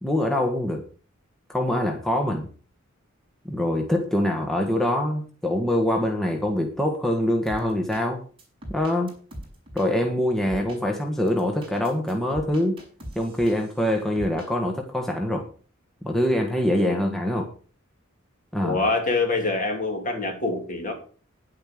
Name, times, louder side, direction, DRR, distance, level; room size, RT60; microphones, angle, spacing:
voice 1, 0.0-0.8 1.5-2.5 3.4-8.2 8.7-9.1 9.7-12.8 13.1-15.5 16.0-17.5 18.5-18.8, left 1 dB, ahead, 1 dB, 1.5 m, -24 dB
sound 1, 7.5-8.0 8.4-9.9 10.5-10.8 11.3-13.8 14.2-14.5, equal, 25° right, 5.7 m, -40 dB
voice 2, 18.6-20.9, left 3 dB, 40° left, 4 dB, 3.0 m, -25 dB
10.5 x 8.8 x 6.2 m, 0.41 s
head